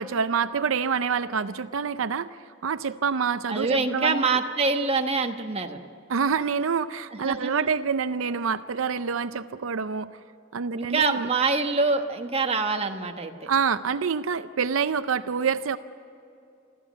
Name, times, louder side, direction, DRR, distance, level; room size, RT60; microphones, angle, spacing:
voice 1, 0.0-2.4 2.6-4.4 6.1-10.1 10.5-11.3 13.5-15.8, right 6 dB, 90° right, 12 dB, 0.5 m, -27 dB
voice 2, 3.5-5.8 7.1-7.7 10.7-13.5, right 4 dB, 30° right, 5 dB, 1.2 m, -25 dB
24.5 x 14.0 x 8.2 m, 2.7 s
head